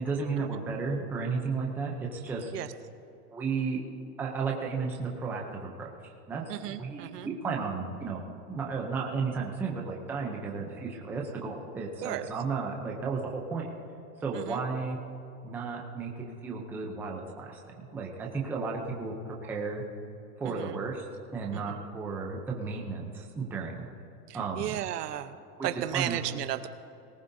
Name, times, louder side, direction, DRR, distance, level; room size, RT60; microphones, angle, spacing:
voice 1, 0.0-2.5 3.3-3.8 4.2-5.9 6.3-8.2 8.5-13.7 14.2-15.0 15.4-19.1 19.4-19.8 20.4-21.0 21.3-23.9 24.3-24.7 25.9-26.2, right 4 dB, 5° right, -1 dB, 0.5 m, -33 dB
voice 2, 6.5-7.3 12.0-12.3 14.3-14.6 20.4-20.8 21.5-21.9 24.3-25.3 25.6-26.7, right 13 dB, 85° right, 10 dB, 0.9 m, -34 dB
19.0 x 18.5 x 2.7 m, 2.7 s
supercardioid pair, 155°, 46 cm